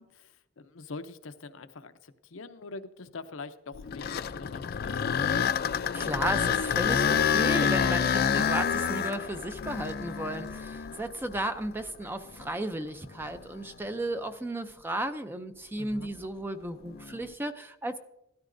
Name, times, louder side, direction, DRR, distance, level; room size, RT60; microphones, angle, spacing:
voice 1, 0.0-5.9 10.8-11.0 15.8-16.1, left 3 dB, 80° left, 11 dB, 0.7 m, -45 dB
sound 1, 3.7-11.8 12.4-12.5 13.2-13.4 16.9-17.2, left 7 dB, 50° left, 0.4 m, -28 dB
voice 2, 5.9-18.0, right 1 dB, 10° right, 8 dB, 0.5 m, -34 dB
16.0 x 13.0 x 2.6 m, 0.91 s
head